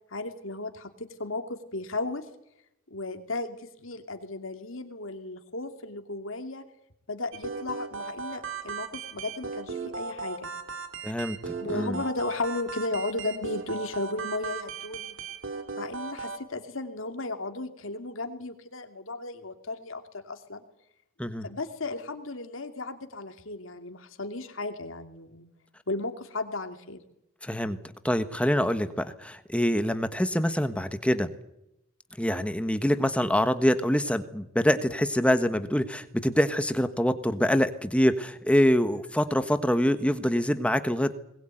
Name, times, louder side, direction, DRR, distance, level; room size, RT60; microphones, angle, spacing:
voice 1, 0.1-2.3 2.9-6.6 7.1-10.5 11.6-15.2 15.8-20.6 21.4-25.5 25.9-27.0, left 2 dB, 70° left, 6 dB, 2.7 m, -35 dB
sound 1, 7.3-16.4, right 4 dB, 65° right, 2.7 m, -37 dB
voice 2, 11.0-12.0 21.2-21.5 27.4-27.8 28.0-31.3 32.2-41.1, equal, 5° left, 10 dB, 1.3 m, -25 dB
21.5 x 20.5 x 9.2 m, 0.81 s
head